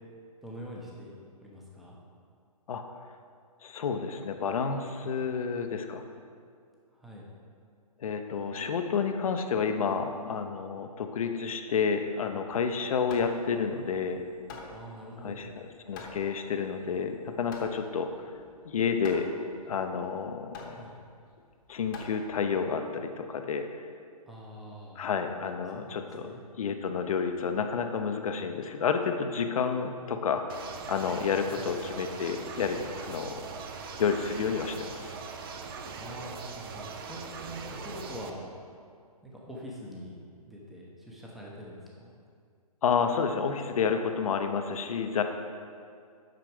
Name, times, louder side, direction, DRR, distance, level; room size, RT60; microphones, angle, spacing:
voice 1, 0.4-1.1 1.4-2.0 5.0-5.2 6.9-7.3 14.7-15.4 20.7-21.0 24.3-25.0 25.7-26.4 31.5-31.6 36.0-38.5 39.2-40.1 40.4-42.1, equal, ahead, -4 dB, 0.9 m, -44 dB
voice 2, 3.6-6.0 8.0-14.2 15.2-18.2 18.6-19.3 19.7-20.8 21.7-23.7 25.0-33.5 34.0-35.1 42.8-45.2, left 6 dB, 60° left, 6 dB, 0.7 m, -30 dB
Hammer, 12.5-22.7, left 4 dB, 30° left, 1.1 m, -48 dB
sound 1, 30.5-38.3, right 5 dB, 35° right, 0.6 m, -41 dB
7.8 x 5.8 x 5.0 m, 2.2 s
hypercardioid pair, 145°, 20 cm